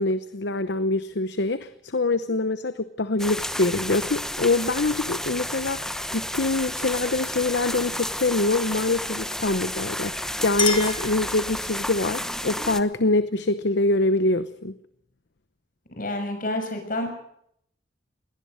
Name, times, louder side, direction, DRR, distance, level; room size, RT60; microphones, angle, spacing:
voice 1, 0.0-14.8, left 2 dB, 65° left, 13 dB, 0.9 m, -24 dB
sound 1, 3.2-12.8, left 1 dB, 5° left, 1.0 m, -31 dB
Chink clink, 10.0-11.9, left 5 dB, 25° left, 2.4 m, -31 dB
voice 2, 16.0-17.2, left 1 dB, 50° left, 5 dB, 6.1 m, -29 dB
22.0 x 18.5 x 6.5 m, 0.70 s
head